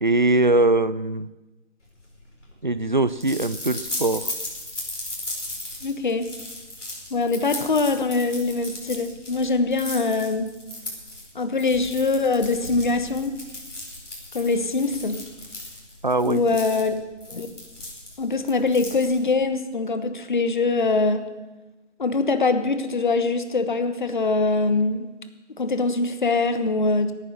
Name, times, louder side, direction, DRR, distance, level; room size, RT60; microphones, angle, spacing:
voice 1, 0.0-1.3 2.6-4.3 16.0-16.6, right 2 dB, 40° right, 17 dB, 0.4 m, -21 dB
sound 1, 2.0-19.4, left 2 dB, 70° left, 5.3 m, -37 dB
voice 2, 5.8-6.3 7.1-10.5 11.3-13.4 14.3-15.2 16.2-16.9 17.3-17.5 18.2-21.3 22.0-25.1 25.6-27.1, left 3 dB, 40° left, 10 dB, 1.2 m, -23 dB
17.5 x 9.7 x 6.7 m, 1.1 s
figure-of-eight pair, 160°, 37 cm